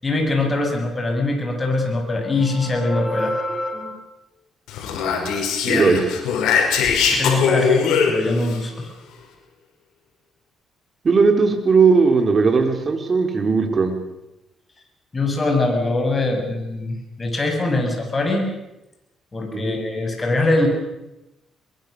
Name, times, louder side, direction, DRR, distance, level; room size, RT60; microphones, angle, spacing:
voice 1, 0.0-4.0 7.1-8.9 15.1-18.5 19.3-20.7, left 2 dB, 25° left, 3 dB, 7.1 m, -22 dB
Speech, 4.7-8.6, left 6 dB, 90° left, 5.7 m, -21 dB
voice 2, 5.7-6.0 11.0-13.9 19.5-19.8, right 4 dB, 40° right, 5 dB, 4.2 m, -17 dB
22.5 x 22.0 x 6.8 m, 0.93 s
cardioid pair, 90°, 0 cm